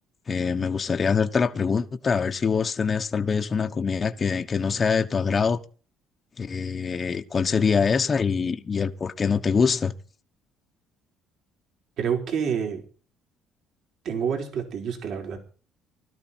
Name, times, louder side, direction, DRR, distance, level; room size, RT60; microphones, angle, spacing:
voice 1, 0.3-5.6 6.4-9.9, left 5 dB, 30° left, 1.0 m, -24 dB
voice 2, 12.0-12.8 14.0-15.4, right 7 dB, 60° right, 4.6 m, -28 dB
20.0 x 13.0 x 4.5 m
cardioid pair, 135°, 0 cm